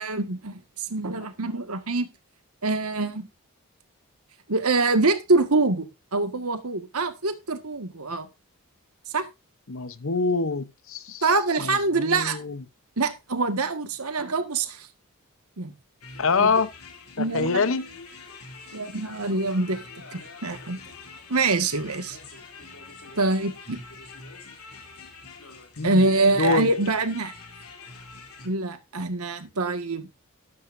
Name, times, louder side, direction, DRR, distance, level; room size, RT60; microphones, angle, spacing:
voice 1, 0.0-2.1 2.6-3.3 4.5-8.3 9.1-9.2 11.2-12.4 13.0-14.9 15.6-15.7 16.4-16.5 17.2-17.6 18.7-19.8 20.1-20.8 21.3-22.2 23.1-23.8 25.8-27.3 28.4-30.1, right 3 dB, 85° right, 1.8 m, -25 dB
voice 2, 9.7-11.2 11.6-12.6 16.2-16.7 17.2-17.9 25.8-26.0 26.4-26.7, left 4 dB, 65° left, 0.9 m, -25 dB
sound 1, 16.0-28.5, left 4 dB, 80° left, 3.0 m, -45 dB
12.5 x 12.0 x 2.6 m
head